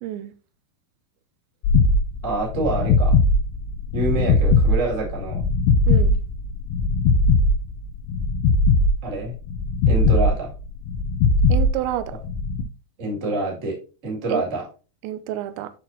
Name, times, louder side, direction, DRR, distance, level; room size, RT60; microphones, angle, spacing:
voice 1, 0.0-0.3 5.9-6.2 11.5-12.1 14.3-14.4 15.0-15.7, right 13 dB, 85° right, 3.0 m, -28 dB
sound 1, 1.6-12.6, left 3 dB, 75° left, 2.6 m, -19 dB
voice 2, 2.2-3.2 3.9-5.4 9.0-9.3 9.9-10.5 13.0-13.8 14.0-14.6, right 2 dB, 25° right, 1.7 m, -26 dB
8.9 x 6.1 x 2.8 m
omnidirectional pair, 5.1 m